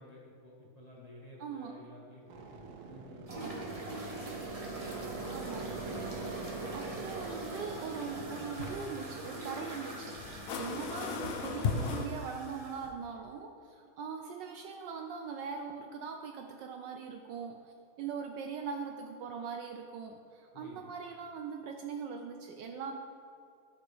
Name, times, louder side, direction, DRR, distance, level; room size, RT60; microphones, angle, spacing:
voice 1, 0.0-4.3 20.5-21.0, left 1 dB, 25° left, -5 dB, 1.0 m, -53 dB
voice 2, 1.4-1.9 5.3-5.8 6.7-23.0, right 6 dB, 75° right, 4 dB, 1.1 m, -41 dB
sound 1, 2.3-8.5, right 4 dB, 90° right, 1.5 m, -43 dB
sound 2, 3.3-12.9, right 2 dB, 40° right, 0.5 m, -44 dB
sound 3, 3.5-12.1, left 5 dB, 80° left, 0.7 m, -41 dB
12.5 x 6.0 x 3.3 m, 2.4 s
omnidirectional pair, 2.3 m